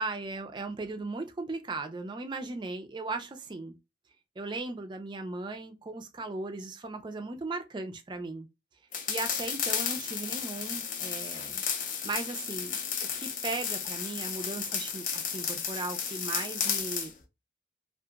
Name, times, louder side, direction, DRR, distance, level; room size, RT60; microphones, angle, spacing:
voice 1, 0.0-3.8 4.4-8.5 9.1-11.6 12.0-17.1, right 3 dB, 25° right, 0.3 m, -37 dB
sound 1, 8.9-17.1, left 7 dB, 45° left, 0.5 m, -33 dB
2.8 x 2.4 x 2.3 m
head